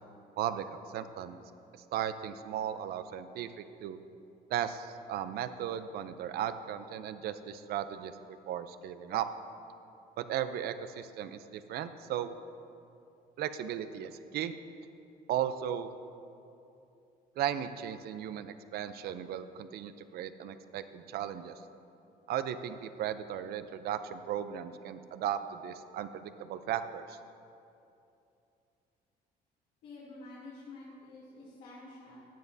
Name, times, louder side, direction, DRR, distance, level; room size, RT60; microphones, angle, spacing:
voice 1, 0.9-1.4 1.9-4.0 4.5-8.1 8.5-9.3 10.2-12.3 13.4-14.5 15.3-15.9 17.4-21.6 22.3-27.2, right 10 dB, 65° right, 11 dB, 0.5 m, -36 dB
voice 2, 29.8-32.2, left 2 dB, 90° left, -11 dB, 2.6 m, -49 dB
15.0 x 9.5 x 2.7 m, 2.7 s
cardioid pair, 110°, 17 cm